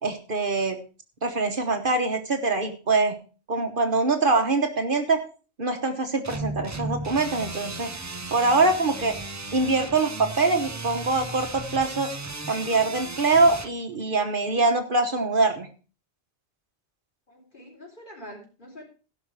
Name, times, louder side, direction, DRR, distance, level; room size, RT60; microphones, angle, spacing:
voice 1, 0.0-0.8 1.2-3.2 3.5-5.2 5.6-7.9 8.3-9.2 9.5-12.1 12.5-15.7, right 3 dB, 50° right, 6 dB, 1.3 m, -23 dB
sound 1, 6.2-13.7, right 2 dB, 20° right, 0.5 m, -35 dB
voice 2, 17.3-18.8, equal, 45° left, -1 dB, 4.1 m, -45 dB
16.5 x 5.9 x 4.7 m, 0.36 s
omnidirectional pair, 1.1 m